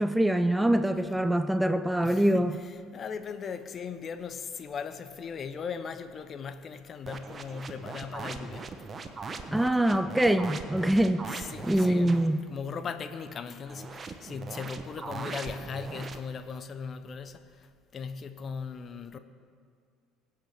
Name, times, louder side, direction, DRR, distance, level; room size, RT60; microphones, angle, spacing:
voice 1, 0.0-2.5 9.5-12.4, right 1 dB, 5° right, 11 dB, 0.5 m, -24 dB
voice 2, 2.0-9.1 11.3-19.2, left 6 dB, 40° left, 11 dB, 0.7 m, -39 dB
sound 1, 7.0-12.3 13.7-16.2, right 4 dB, 30° right, 0.9 m, -40 dB
20.5 x 8.6 x 3.5 m, 2.1 s
figure-of-eight pair, 60°, 0 cm